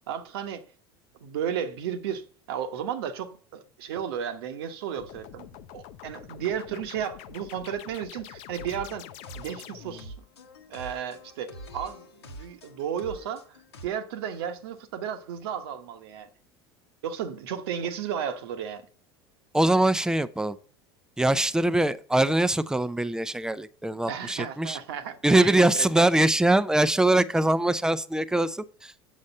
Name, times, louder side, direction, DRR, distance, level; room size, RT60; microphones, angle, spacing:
voice 1, 0.1-0.7 1.2-9.1 9.3-10.1 10.7-13.6 13.8-16.3 17.0-18.8 24.1-26.0, right 8 dB, 70° right, 1.1 m, -34 dB
sound 1, 4.9-10.1, left 11 dB, 60° left, 0.7 m, -45 dB
sound 2, 8.6-13.9, right 1 dB, 85° left, 1.2 m, -45 dB
voice 2, 19.5-20.6 21.2-24.8 25.2-29.0, right 1 dB, 5° right, 0.5 m, -23 dB
7.4 x 6.4 x 5.4 m
hypercardioid pair, 80°, 13 cm